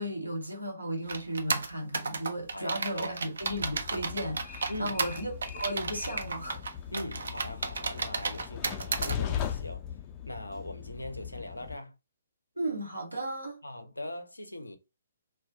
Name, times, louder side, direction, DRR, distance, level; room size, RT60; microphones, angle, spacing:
voice 1, 0.0-6.6 12.6-13.6, right 1 dB, 90° right, 0.9 m, -35 dB
sound 1, 1.1-9.2, right 4 dB, 65° right, 0.4 m, -33 dB
voice 2, 2.5-3.2 4.7-5.0 6.9-9.8 10.3-11.9 13.6-14.8, left 1 dB, 85° left, 0.5 m, -41 dB
Train, 3.4-11.7, left 9 dB, 25° left, 0.3 m, -39 dB
2.2 x 2.1 x 2.6 m
figure-of-eight pair, 130°, 0 cm